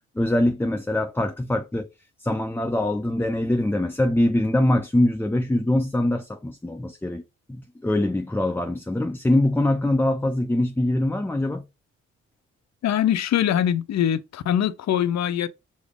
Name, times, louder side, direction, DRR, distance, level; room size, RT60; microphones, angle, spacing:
voice 1, 0.2-1.9 2.2-7.2 7.5-11.7, left 1 dB, 5° left, 0.5 m, -23 dB
voice 2, 12.8-15.5, left 10 dB, 55° left, 0.6 m, -23 dB
5.2 x 2.0 x 4.8 m
supercardioid pair, 50°, 32 cm